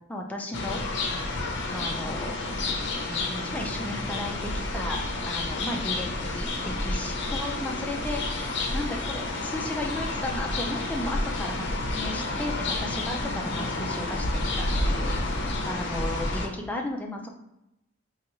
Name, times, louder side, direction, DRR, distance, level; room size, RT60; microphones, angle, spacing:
voice 1, 0.1-0.8 1.7-2.5 3.1-12.5 12.8-14.3 14.6-17.3, left 1 dB, 10° left, 1 dB, 0.4 m, -35 dB
sound 1, 0.5-16.5, left 2 dB, 60° left, 0.6 m, -30 dB
3.9 x 2.3 x 3.0 m, 0.88 s
head